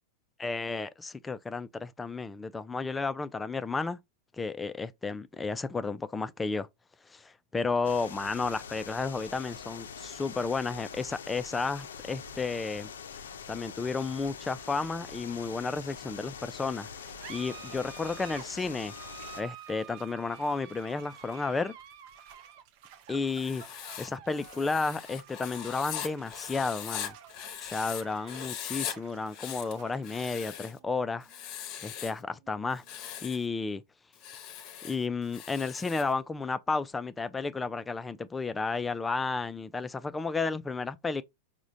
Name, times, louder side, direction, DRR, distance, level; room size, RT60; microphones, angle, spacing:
voice 1, 0.4-4.0 4.4-6.7 7.1-12.9 13.5-18.9 19.4-21.7 23.1-23.6 24.0-27.1 27.6-31.3 31.8-33.8 34.8-41.2, left 4 dB, 15° left, 0.3 m, -32 dB
sound 1, 7.8-19.4, left 6 dB, 90° left, 0.4 m, -44 dB
sound 2, 16.8-33.8, right 9 dB, 55° right, 0.5 m, -51 dB
Writing, 23.3-28.0 28.3-28.9 29.3-30.8 31.2-32.2 32.7-33.4 34.1-36.1, left 10 dB, 45° left, 0.8 m, -40 dB
4.8 x 2.1 x 2.6 m
hypercardioid pair, 115°, 0 cm